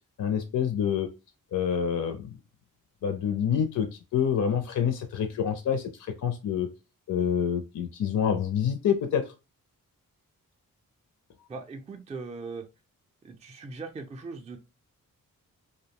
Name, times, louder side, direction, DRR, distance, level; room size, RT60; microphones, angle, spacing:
voice 1, 0.2-1.2 1.5-2.3 3.0-6.7 7.1-9.3, left 8 dB, 60° left, 6 dB, 0.5 m, -27 dB
voice 2, 11.5-12.6 13.2-14.6, right 4 dB, 20° right, 4 dB, 0.4 m, -39 dB
2.6 x 2.1 x 2.8 m, 0.28 s
cardioid pair, 80°, 35 cm